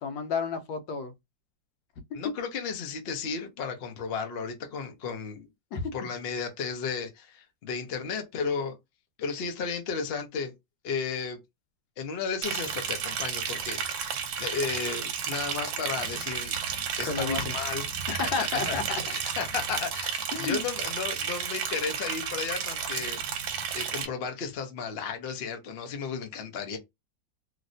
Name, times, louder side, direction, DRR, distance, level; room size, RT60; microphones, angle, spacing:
voice 1, 0.0-1.1 5.7-5.9 17.1-17.5 18.1-19.0 20.3-20.6, left 4 dB, 85° left, 1.4 m, -31 dB
voice 2, 2.1-5.5 5.9-8.7 9.2-10.5 10.8-11.4 12.0-16.5 17.0-23.2 23.7-26.8, left 5 dB, 60° left, 0.6 m, -34 dB
Liquid, 12.4-24.0, right 7 dB, 85° right, 1.4 m, -32 dB
3.1 x 2.6 x 2.6 m
omnidirectional pair, 2.0 m